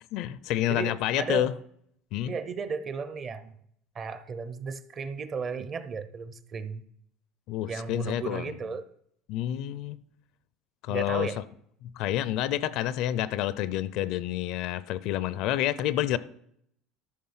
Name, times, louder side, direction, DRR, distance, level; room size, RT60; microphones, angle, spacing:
voice 1, 0.1-1.5 2.1-2.3 7.5-8.5 9.3-10.0 10.8-11.3 11.8-16.2, left 13 dB, 50° left, 0.4 m, -28 dB
voice 2, 0.7-1.5 2.2-3.6 3.9-6.9 7.7-8.8 10.9-11.5, right 5 dB, 25° right, 0.5 m, -35 dB
13.0 x 6.1 x 5.6 m
cardioid pair, 170°, 0 cm